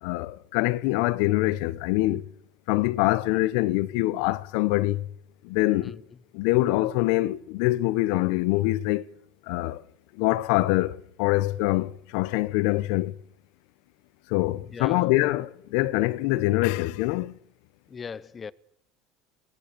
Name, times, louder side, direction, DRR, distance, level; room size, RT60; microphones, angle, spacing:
voice 1, 0.0-2.3 2.7-5.1 5.4-6.0 6.3-9.0 9.5-9.8 10.2-13.1 14.3-17.4, left 18 dB, 80° left, 0.9 m, -24 dB
voice 2, 14.7-15.1 17.9-18.5, left 6 dB, 20° left, 0.8 m, -38 dB
24.5 x 18.5 x 6.9 m
cardioid pair, 140°, 0 cm